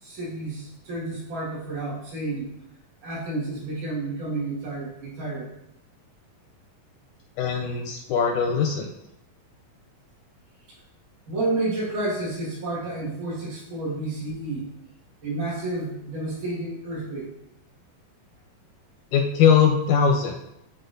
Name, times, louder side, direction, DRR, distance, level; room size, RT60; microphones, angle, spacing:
voice 1, 0.0-2.5 3.0-5.5 11.3-14.7 15.2-17.3, right 2 dB, 65° right, -6 dB, 3.3 m, -30 dB
voice 2, 7.4-8.9 19.1-20.4, left 7 dB, 80° left, 2 dB, 1.8 m, -21 dB
9.7 x 3.9 x 2.6 m, 0.82 s
omnidirectional pair, 3.9 m